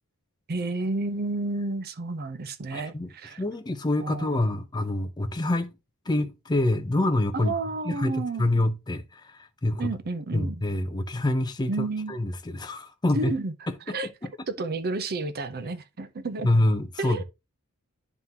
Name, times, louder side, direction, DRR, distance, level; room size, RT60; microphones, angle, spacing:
voice 1, 0.5-3.4 4.0-4.4 7.3-8.5 9.8-10.6 11.7-12.1 13.1-13.5 13.9-14.1 14.5-16.7 17.0-17.2, right 3 dB, 45° right, 0.6 m, -31 dB
voice 2, 2.7-3.1 3.4-5.7 6.1-7.5 7.8-9.9 10.3-13.3 16.4-17.2, left 1 dB, 20° left, 0.5 m, -26 dB
11.0 x 3.6 x 2.8 m
head